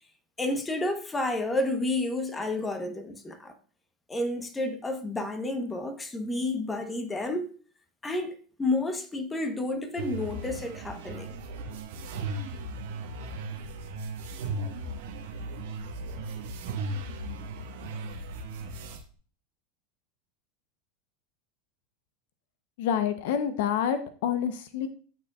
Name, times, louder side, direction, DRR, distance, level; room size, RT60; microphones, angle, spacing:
voice 1, 0.4-3.5 4.1-7.6 8.0-11.3, left 2 dB, 15° left, 1.0 m, -30 dB
sound 1, 10.0-19.0, right 2 dB, 75° right, 1.3 m, -36 dB
voice 2, 22.8-24.9, left 8 dB, 70° left, 0.7 m, -28 dB
12.0 x 4.5 x 2.4 m
supercardioid pair, 115°, 0 cm